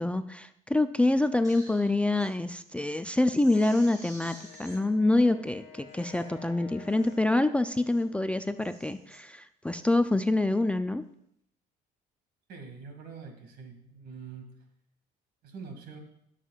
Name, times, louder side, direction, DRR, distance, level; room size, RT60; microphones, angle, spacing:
voice 1, 0.0-11.0, left 2 dB, 5° left, 10 dB, 0.4 m, -26 dB
Crying sobbing, 1.3-2.3 2.8-2.9 3.3-4.8 5.5-5.6 5.9-6.3 6.8-7.2 7.6-8.1 8.4-9.2 9.7-10.0, equal, 20° right, 4.4 m, -51 dB
Wind instrument woodwind instrument, 4.2-8.5, left 5 dB, 40° left, 1.9 m, -51 dB
voice 2, 12.5-14.5 15.4-16.0, right 5 dB, 70° right, 5 dB, 2.2 m, -44 dB
19.5 x 7.4 x 2.4 m, 0.73 s
cardioid pair, 110°, 17 cm